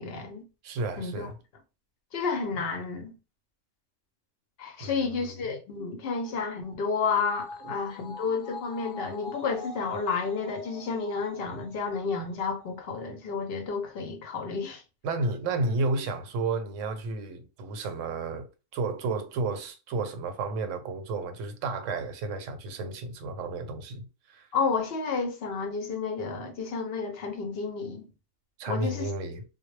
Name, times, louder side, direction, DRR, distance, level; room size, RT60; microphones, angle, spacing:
voice 1, 0.0-0.4 1.0-1.3 2.1-3.1 4.6-14.8 24.5-28.1 28.7-29.1, left 5 dB, 60° left, 0.7 m, -31 dB
voice 2, 0.6-1.3 4.8-5.4 7.6-7.7 15.0-24.5 28.6-29.4, right 3 dB, 80° right, 0.9 m, -32 dB
sound 1, 6.1-12.7 13.1-13.2, left 3 dB, 90° left, 1.0 m, -44 dB
2.1 x 2.0 x 3.0 m
omnidirectional pair, 1.3 m